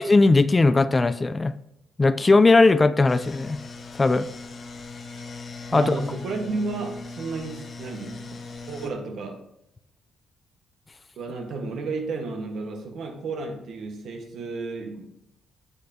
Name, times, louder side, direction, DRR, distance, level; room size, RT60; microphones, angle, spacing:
voice 1, 0.0-1.5 2.0-3.6 4.0-4.3 5.7-6.0, left 3 dB, 25° left, 13 dB, 0.4 m, -18 dB
sound 1, 3.1-8.9, left 3 dB, 45° left, 0.9 m, -39 dB
voice 2, 5.7-8.3 8.7-9.4 11.2-15.1, right 3 dB, 70° right, 5 dB, 1.3 m, -32 dB
9.5 x 6.4 x 2.8 m, 0.81 s
cardioid pair, 90°, 0 cm